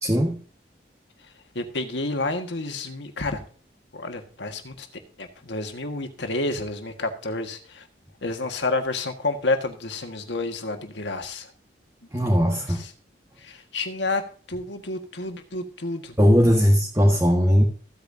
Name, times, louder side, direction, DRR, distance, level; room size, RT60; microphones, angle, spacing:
voice 1, 0.0-0.4 12.1-12.8 16.2-17.6, equal, 15° right, 0 dB, 1.5 m, -19 dB
voice 2, 1.5-3.4 3.9-4.9 5.2-7.8 8.2-11.5 13.4-14.2 14.5-16.1, left 2 dB, 85° left, 6 dB, 1.7 m, -29 dB
15.5 x 8.5 x 2.7 m, 0.42 s
head